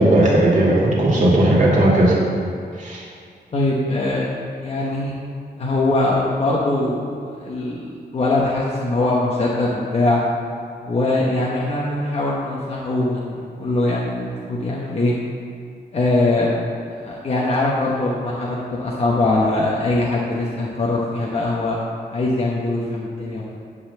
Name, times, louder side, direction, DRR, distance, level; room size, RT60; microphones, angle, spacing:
voice 1, 0.0-2.1 2.8-3.0, right 1 dB, 45° right, -5 dB, 2.3 m, -16 dB
voice 2, 3.5-4.3 4.6-5.2 5.6-10.2 10.8-15.1 15.9-16.5 17.0-21.8 22.1-23.6, left 2 dB, 35° left, -5 dB, 1.0 m, -22 dB
10.5 x 4.1 x 6.9 m, 2.3 s
wide cardioid pair, 175°, 17 cm